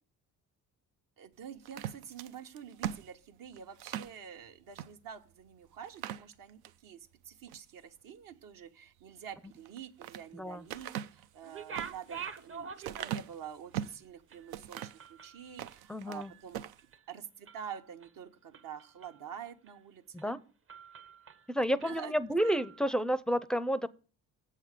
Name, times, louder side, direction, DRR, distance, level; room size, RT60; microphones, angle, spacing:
voice 1, 1.2-16.6 17.1-20.4 21.7-22.2, right 8 dB, 65° right, 1.0 m, -47 dB
sound 1, 1.6-4.2 4.7-4.9 5.3-5.4 5.8-6.8 7.3-7.7 9.5-10.2 10.7-14.0 14.5-15.1 15.5-16.2 16.5-16.8, right 11 dB, 80° right, 0.5 m, -40 dB
voice 2, 10.3-10.6 15.9-16.3 20.1-20.4 21.5-23.9, equal, ahead, 0.5 m, -30 dB
sound 2, 11.4-13.4 13.8-13.9 14.3-16.5 16.8-17.1 17.5-18.1 18.5-19.3 19.7-19.8 20.2-20.4 20.7-21.5 21.8-22.9, right 6 dB, 35° right, 0.7 m, -47 dB
7.5 x 5.5 x 6.5 m
supercardioid pair, 60°, 37 cm